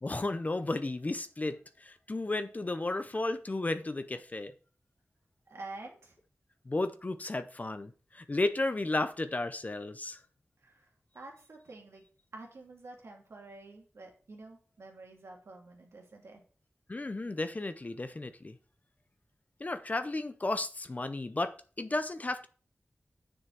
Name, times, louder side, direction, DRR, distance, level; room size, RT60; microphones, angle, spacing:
voice 1, 0.0-4.5 6.7-10.2 16.9-18.6 19.6-22.5, left 2 dB, 35° left, 0.6 m, -33 dB
voice 2, 5.5-6.2 10.6-12.0 12.3-16.4, right 2 dB, 80° right, 2.4 m, -48 dB
7.3 x 6.4 x 4.6 m
wide cardioid pair, 75°, 4 cm